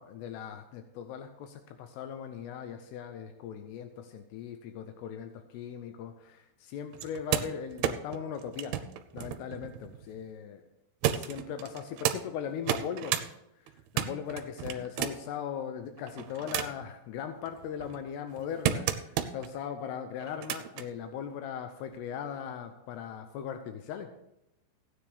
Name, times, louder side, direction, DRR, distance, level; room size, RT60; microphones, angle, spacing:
voice 1, 0.0-8.8 9.1-10.6 11.2-13.2 13.9-24.1, left 8 dB, 85° left, 7 dB, 2.8 m, -39 dB
sound 1, 6.9-10.3 11.0-12.2 12.6-13.3 13.7-15.3 16.0-16.9 17.5-19.5 20.2-20.9 21.9-22.0, right 11 dB, 85° right, 2.5 m, -33 dB
15.5 x 9.7 x 3.4 m, 0.84 s
omnidirectional pair, 4.7 m